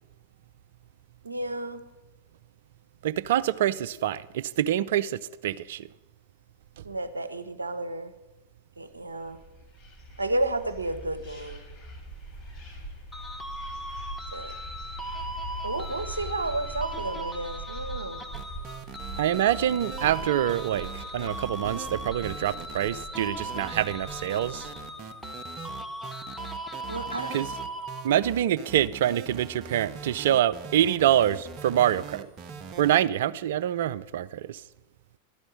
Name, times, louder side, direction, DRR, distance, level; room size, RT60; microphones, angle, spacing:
voice 1, 1.2-1.8 6.8-8.1 8.8-9.4 10.2-11.6 14.3-14.5 15.6-18.2 26.9-27.3, right 2 dB, 80° right, 0.7 m, -32 dB
voice 2, 3.0-5.9 19.2-24.7 27.3-27.5 28.0-32.3 32.8-34.6, right 11 dB, 55° right, 0.3 m, -26 dB
sound 1, 9.1-24.8, right 1 dB, 30° left, 3.5 m, -42 dB
sound 2, 13.1-28.3, equal, 5° left, 0.7 m, -39 dB
sound 3, 18.3-32.9, right 7 dB, 35° right, 0.7 m, -42 dB
12.0 x 5.3 x 8.6 m
figure-of-eight pair, 90°, 0 cm